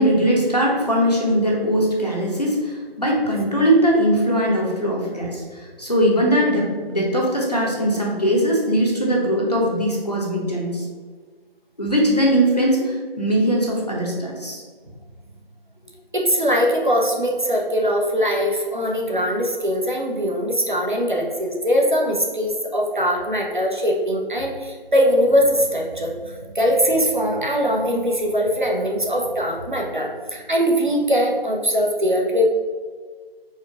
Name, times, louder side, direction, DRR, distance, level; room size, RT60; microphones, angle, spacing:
voice 1, 0.0-10.8 11.8-14.6, equal, 40° left, -3 dB, 0.9 m, -20 dB
voice 2, 16.1-32.5, equal, 50° right, -1 dB, 0.8 m, -21 dB
4.4 x 2.3 x 4.8 m, 1.5 s
figure-of-eight pair, 170°, 30 cm